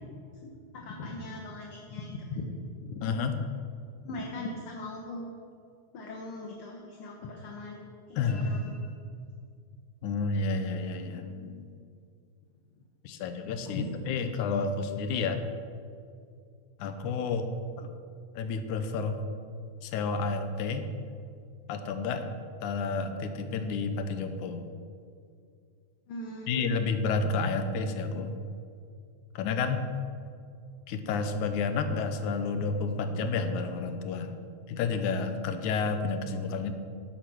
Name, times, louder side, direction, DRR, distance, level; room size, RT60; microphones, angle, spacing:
voice 1, 0.4-2.5 2.8-3.0 4.0-5.3 5.9-7.8 8.1-8.9 13.7-13.8 26.1-26.9 27.5-27.6, left 2 dB, 60° left, 0 dB, 1.6 m, -39 dB
voice 2, 3.0-3.4 8.2-8.4 10.0-11.7 13.0-15.4 16.8-17.5 17.8-17.9 18.4-19.2 19.8-20.9 21.7-22.3 22.6-24.6 26.5-28.3 29.4-29.8 30.9-34.3 34.7-36.7, left 4 dB, 85° left, 8 dB, 2.3 m, -30 dB
12.0 x 8.4 x 6.1 m, 2.4 s
omnidirectional pair, 3.4 m